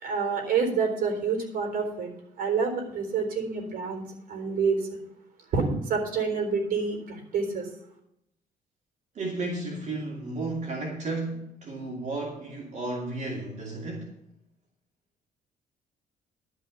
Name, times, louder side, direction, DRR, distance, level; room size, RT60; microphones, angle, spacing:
voice 1, 0.0-2.1 2.4-4.9 5.5-7.7, right 5 dB, 70° right, 3.8 m, -28 dB
voice 2, 9.1-14.2, right 2 dB, 50° right, 2.6 m, -33 dB
12.0 x 5.7 x 8.3 m
cardioid pair, 135°, 15 cm